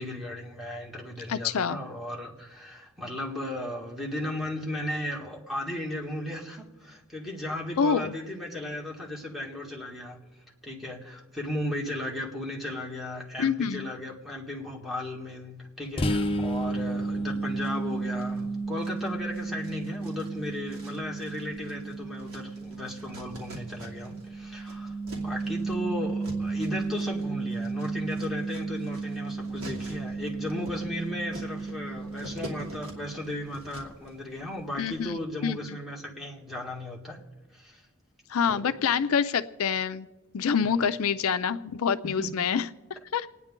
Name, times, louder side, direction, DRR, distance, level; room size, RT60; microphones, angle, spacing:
voice 1, 0.0-10.2 10.6-37.2 37.5-37.8 38.4-38.7 40.6-40.9 42.0-42.3, left 1 dB, ahead, -4 dB, 2.0 m, -36 dB
voice 2, 1.3-1.8 7.8-8.1 13.4-13.9 34.8-35.8 38.3-40.1 40.3-42.7 43.1-43.3, left 6 dB, 70° left, 12 dB, 0.4 m, -26 dB
sound 1, 16.0-33.5, right 3 dB, 25° left, 0.6 m, -33 dB
sound 2, 17.6-18.4 18.8-24.3 24.5-34.1, right 1 dB, 70° right, 2.6 m, -46 dB
28.5 x 9.6 x 3.7 m, 1.2 s
head